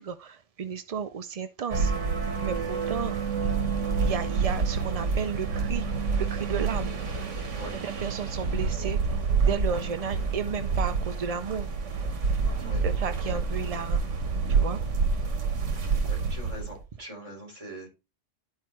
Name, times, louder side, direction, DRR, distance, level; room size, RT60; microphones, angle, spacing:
voice 1, 0.0-1.9 2.4-3.2 3.5-3.6 4.0-5.9 6.2-6.9 7.7-9.2 9.5-11.7 12.8-14.2 14.5-14.8, right 6 dB, 55° right, 0.4 m, -33 dB
sound 1, 1.7-16.8, right 5 dB, 90° right, 1.5 m, -28 dB
voice 2, 16.1-17.9, right 1 dB, 25° right, 3.8 m, -42 dB
12.5 x 4.6 x 3.1 m
omnidirectional pair, 1.2 m